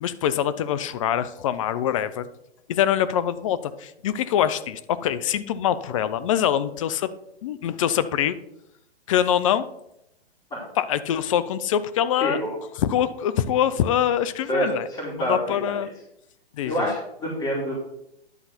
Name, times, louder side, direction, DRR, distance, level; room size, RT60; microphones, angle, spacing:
voice 1, 0.0-2.3 2.7-7.1 7.4-8.4 9.1-9.7 10.8-12.4 12.8-14.9 15.2-15.9 16.5-16.8, left 10 dB, 30° left, 14 dB, 0.5 m, -24 dB
voice 2, 12.2-12.5 14.5-15.7 16.6-17.8, equal, 15° left, -7 dB, 2.4 m, -27 dB
10.5 x 3.9 x 5.9 m, 0.81 s
hypercardioid pair, 130°, 32 cm